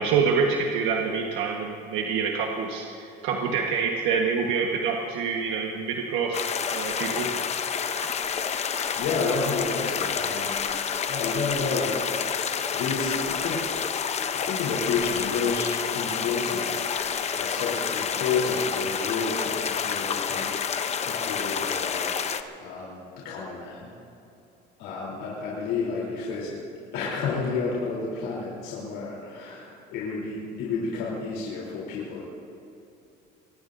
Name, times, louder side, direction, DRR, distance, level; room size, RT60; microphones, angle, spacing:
voice 1, 0.0-6.4 6.7-7.3, right 5 dB, 80° right, 0 dB, 1.4 m, -26 dB
sound 1, 6.3-22.4, left 7 dB, 35° left, 0.8 m, -29 dB
voice 2, 9.0-10.7 11.1-13.6 14.3-15.7 15.9-16.9 17.4-22.1 22.6-23.9 24.8-26.5 26.9-32.2, left 4 dB, 85° left, -5 dB, 3.6 m, -30 dB
23.5 x 20.0 x 2.7 m, 2.8 s
cardioid pair, 120°, 19 cm